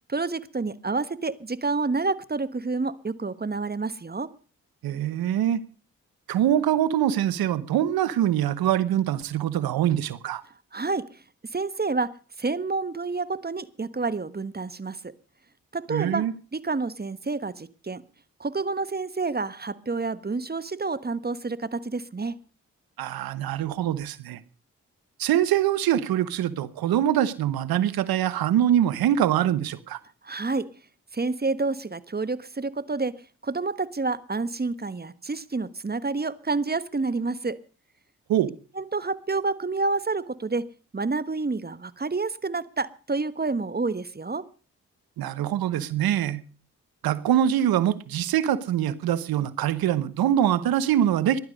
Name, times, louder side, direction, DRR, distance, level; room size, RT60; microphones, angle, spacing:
voice 1, 0.1-4.3 10.7-11.2 11.5-12.1 12.4-15.1 15.7-16.2 16.5-18.0 18.4-22.4 30.2-30.7 31.1-33.1 33.4-37.6 38.7-40.7 40.9-44.4, right 3 dB, 25° right, 1.3 m, -29 dB
voice 2, 4.8-5.6 6.3-10.4 15.9-16.3 23.0-24.4 25.2-30.0 38.3-38.5 45.2-46.4 47.0-51.4, right 11 dB, 85° right, 1.1 m, -24 dB
15.5 x 11.5 x 5.3 m
supercardioid pair, 45°, 35 cm